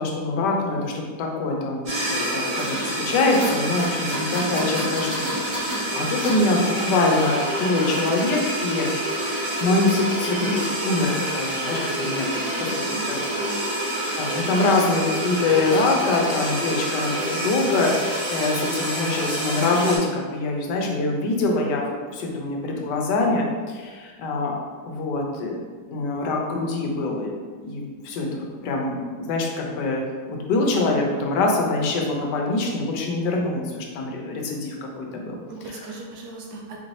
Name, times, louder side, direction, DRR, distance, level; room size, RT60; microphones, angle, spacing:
voice 1, 0.0-8.9 9.6-12.3 12.6-12.7 13.1-13.2 13.8-21.8 22.1-24.5 24.8-25.6 25.9-27.3 27.6-35.4 35.7-35.8, left 2 dB, 85° left, 0 dB, 1.3 m, -24 dB
sound 1, 1.9-20.0, right 1 dB, 50° right, 1.5 m, -27 dB
voice 2, 12.3-13.7 35.5-36.8, right 2 dB, 75° right, 0 dB, 1.1 m, -38 dB
4.1 x 2.6 x 3.1 m, 1.5 s
omnidirectional pair, 1.8 m